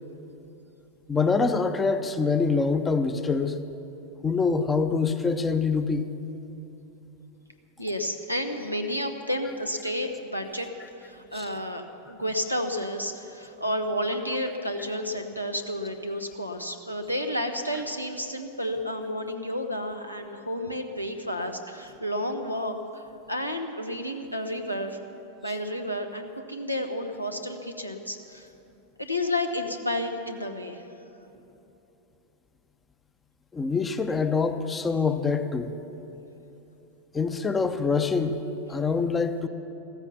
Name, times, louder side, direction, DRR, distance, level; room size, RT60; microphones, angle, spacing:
voice 1, 1.1-3.6 4.2-6.1 11.3-11.5 33.5-35.7 37.1-38.4 38.7-39.5, left 4 dB, 15° left, 10 dB, 0.7 m, -25 dB
voice 2, 7.8-10.7 11.0-23.0 23.3-25.0 25.4-28.5 29.0-30.9, left 1 dB, 90° left, 4 dB, 1.0 m, -31 dB
15.0 x 14.0 x 5.8 m, 3.0 s
figure-of-eight pair, 90°, 0 cm